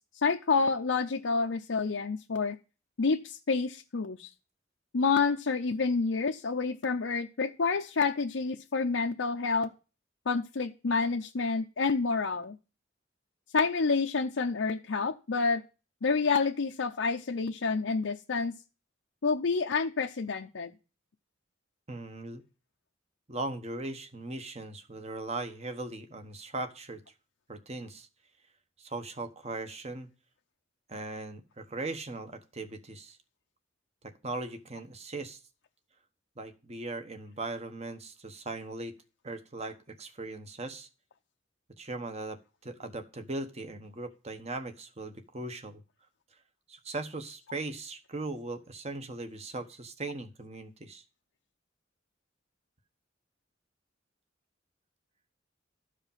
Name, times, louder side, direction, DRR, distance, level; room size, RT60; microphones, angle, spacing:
voice 1, 0.2-2.6 3.0-4.3 4.9-9.7 10.3-12.6 13.5-15.6 16.0-18.5 19.2-20.7, left 4 dB, 90° left, 2 dB, 0.6 m, -28 dB
voice 2, 21.9-22.4 23.3-27.0 27.5-28.1 28.8-30.1 30.9-33.2 34.0-35.4 36.4-38.9 39.2-40.9 41.8-42.4 42.6-45.8 46.7-51.0, right 2 dB, 35° right, 8 dB, 1.2 m, -39 dB
13.0 x 5.0 x 5.6 m, 0.33 s
head